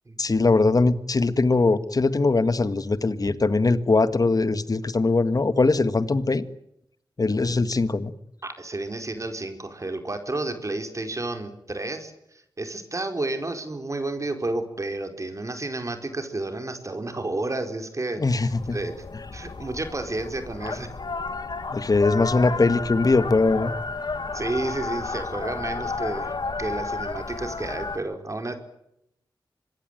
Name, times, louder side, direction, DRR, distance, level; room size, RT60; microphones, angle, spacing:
voice 1, 0.2-6.4 7.2-8.1 18.2-18.8 21.7-23.7, left 3 dB, 45° left, 13 dB, 1.8 m, -21 dB
voice 2, 8.4-18.9 19.3-20.9 24.3-26.3 26.6-28.5, right 2 dB, 40° right, 6 dB, 4.6 m, -31 dB
sound 1, 18.5-28.0, left 4 dB, 65° left, 2.1 m, -32 dB
25.5 x 22.0 x 9.2 m, 0.79 s
wide cardioid pair, 70°, 8 cm